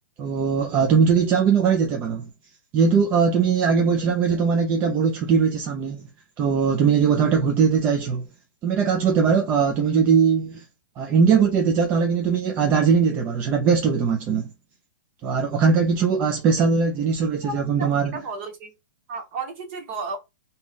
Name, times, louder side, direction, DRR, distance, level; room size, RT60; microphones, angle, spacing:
voice 1, 0.2-2.3 2.7-6.1 6.4-8.2 8.6-10.6 11.0-14.5 15.2-18.1, right 6 dB, 15° right, 0.3 m, -20 dB
voice 2, 17.8-18.7 19.1-20.2, right 3 dB, 35° right, 1.0 m, -33 dB
2.7 x 2.3 x 3.5 m
hypercardioid pair, 160°, 11 cm